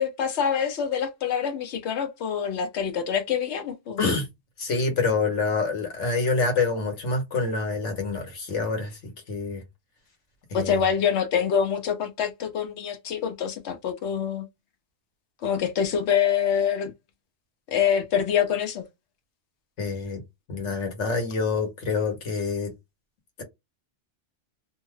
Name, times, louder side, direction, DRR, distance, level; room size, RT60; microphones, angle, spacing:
voice 1, 0.0-4.0 10.5-14.5 15.4-16.9 17.7-18.8, left 8 dB, 70° left, 0.9 m, -25 dB
voice 2, 4.6-9.6 10.5-10.8 19.8-20.2 20.5-22.7, left 4 dB, 85° left, 1.3 m, -26 dB
2.7 x 2.3 x 3.1 m
omnidirectional pair, 1.2 m